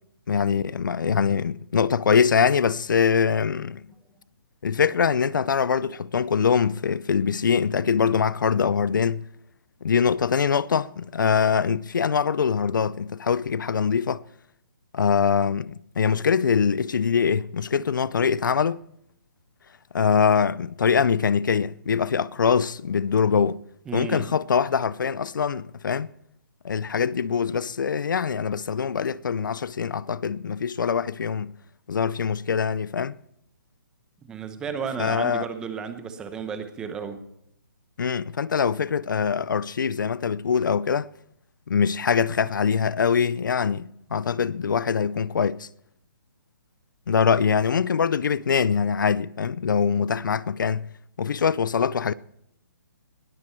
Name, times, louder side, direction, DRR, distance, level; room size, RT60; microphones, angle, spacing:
voice 1, 0.3-3.8 4.6-9.2 9.8-14.2 14.9-18.8 19.9-23.6 23.9-26.1 26.6-31.5 31.9-33.2 35.0-35.5 38.0-41.1 41.7-45.7 47.1-50.9 51.2-52.1, left 6 dB, 65° left, 0.6 m, -23 dB
voice 2, 23.9-24.3 34.3-37.2, right 6 dB, 5° right, 0.9 m, -33 dB
20.0 x 13.5 x 4.5 m
hypercardioid pair, 170°, 11 cm